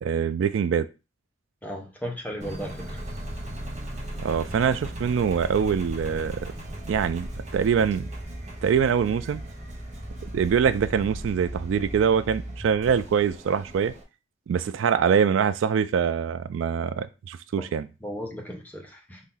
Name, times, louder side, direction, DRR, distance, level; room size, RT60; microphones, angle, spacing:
voice 1, 0.0-0.9 4.2-6.4 6.9-7.3 7.5-8.1 8.6-9.4 10.2-13.9 14.5-17.9, right 7 dB, 80° right, 0.3 m, -24 dB
voice 2, 1.6-3.0 18.0-19.2, equal, 10° left, 0.8 m, -35 dB
Engine, 2.4-14.0, right 1 dB, 35° right, 1.0 m, -37 dB
4.1 x 2.6 x 3.8 m
head